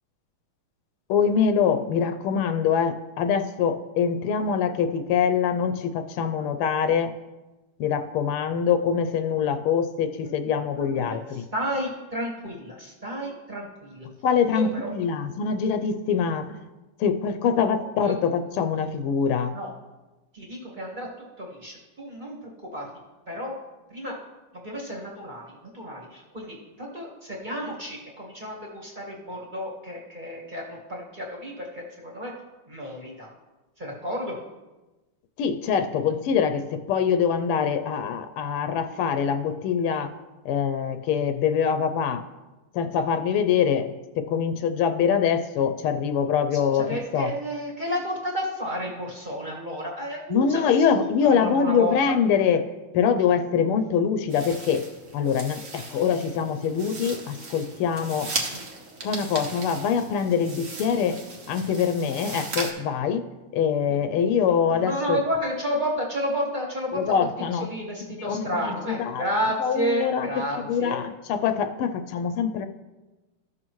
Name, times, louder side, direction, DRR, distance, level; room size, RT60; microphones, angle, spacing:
voice 1, 1.1-7.1 7.8-11.4 14.2-16.7 17.0-19.5 35.4-40.1 40.4-42.2 42.7-46.9 47.1-47.3 50.3-52.7 52.9-54.8 55.1-58.3 59.0-61.2 61.5-63.2 63.5-65.2 66.9-67.7 68.1-72.7, left 7 dB, 85° left, 8 dB, 1.5 m, -24 dB
voice 2, 10.8-11.2 11.5-14.1 14.5-14.9 17.8-18.1 19.5-19.7 20.3-21.1 21.4-22.4 22.6-22.9 23.3-23.5 23.9-24.2 24.5-32.3 32.7-33.3 33.8-34.4 46.7-52.0 58.5-58.6 63.9-64.0 64.5-67.3 67.6-71.0, equal, 25° right, -3 dB, 1.5 m, -31 dB
sound 1, 54.3-62.7, right 3 dB, 45° right, 1.2 m, -37 dB
14.0 x 6.2 x 3.0 m, 1.1 s
omnidirectional pair, 2.4 m